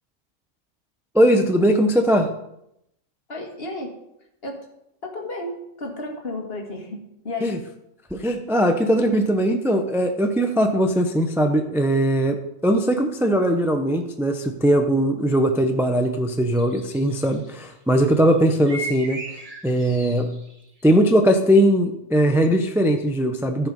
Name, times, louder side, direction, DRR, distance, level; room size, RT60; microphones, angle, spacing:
voice 1, 1.1-2.3 7.4-7.6 8.1-12.4 12.6-19.2 19.6-20.3 20.8-23.7, equal, 5° right, 5 dB, 0.5 m, -20 dB
voice 2, 3.3-4.0 4.4-4.7 5.0-7.7, left 2 dB, 45° left, 1 dB, 1.9 m, -33 dB
sound 1, 16.6-17.7 18.1-20.9, right 1 dB, 25° right, 2.2 m, -37 dB
14.5 x 5.4 x 5.3 m, 0.81 s
omnidirectional pair, 1.4 m